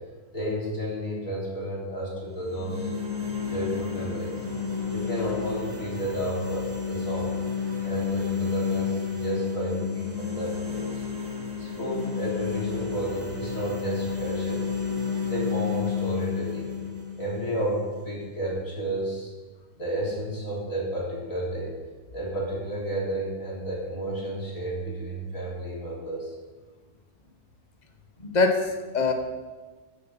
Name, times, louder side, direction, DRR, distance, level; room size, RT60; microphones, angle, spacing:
voice 1, 0.3-2.9 3.5-4.4 4.9-7.3 7.8-11.0 11.6-14.7 15.3-16.7 17.1-19.3 19.8-21.7 22.1-26.3, right 1 dB, 60° left, -5 dB, 4.1 m, -31 dB
sound 1, 2.3-18.4, left 6 dB, 75° right, 3.4 m, -31 dB
voice 2, 28.2-29.1, left 3 dB, 30° left, 5 dB, 1.2 m, -24 dB
15.5 x 7.5 x 5.7 m, 1.3 s
omnidirectional pair, 1.6 m